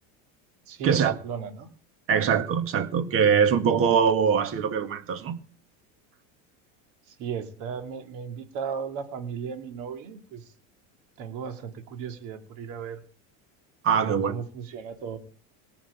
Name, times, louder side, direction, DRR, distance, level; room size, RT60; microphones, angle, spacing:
voice 1, 0.7-1.7 7.1-10.4 11.2-13.0 14.0-15.2, right 6 dB, 50° right, 2.9 m, -36 dB
voice 2, 2.1-5.4 13.8-14.4, right 7 dB, 35° right, 1.8 m, -22 dB
19.0 x 6.3 x 9.0 m
cardioid pair, 170°, 39 cm